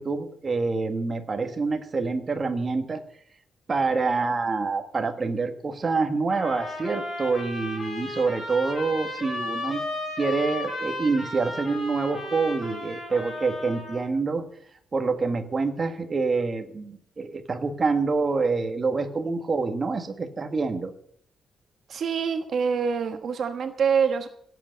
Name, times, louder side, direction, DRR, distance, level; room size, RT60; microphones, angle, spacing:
voice 1, 0.0-3.0 3.7-9.8 10.2-14.4 14.9-20.9, right 4 dB, 25° right, 5 dB, 1.5 m, -26 dB
sound 1, 6.3-14.1, left 2 dB, 30° left, 8.0 m, -34 dB
voice 2, 21.9-24.3, right 6 dB, 50° right, 7 dB, 1.3 m, -25 dB
17.0 x 8.2 x 7.8 m, 0.64 s
wide cardioid pair, 165°, 0 cm